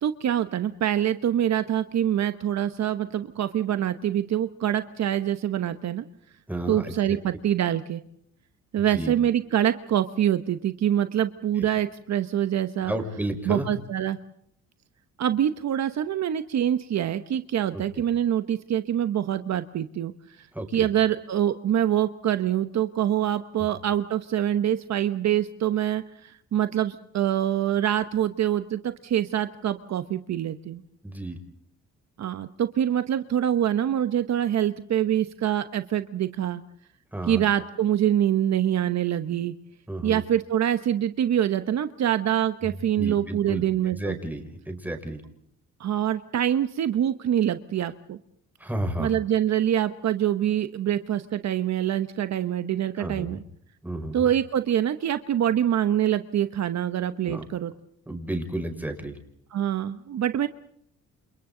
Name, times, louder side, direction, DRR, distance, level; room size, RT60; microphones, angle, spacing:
voice 1, 0.0-6.0 6.7-8.0 8.7-12.9 13.5-14.2 15.2-20.1 20.4-20.5 20.7-30.8 32.2-36.6 37.3-39.5 40.0-44.2 45.8-48.2 49.0-53.4 54.1-57.7 59.5-60.5, right 10 dB, 60° right, 10 dB, 1.1 m, -25 dB
voice 2, 6.5-7.2 8.8-9.1 11.6-11.7 12.8-13.7 17.7-17.8 20.5-20.9 31.0-31.4 37.1-37.4 39.9-40.2 42.6-43.6 43.9-45.2 48.6-49.1 53.0-53.3 53.8-54.1 57.2-57.4 58.1-59.2, right 1 dB, 5° right, 4 dB, 6.0 m, -32 dB
29.5 x 27.5 x 3.9 m, 0.70 s
cardioid pair, 90°, 30 cm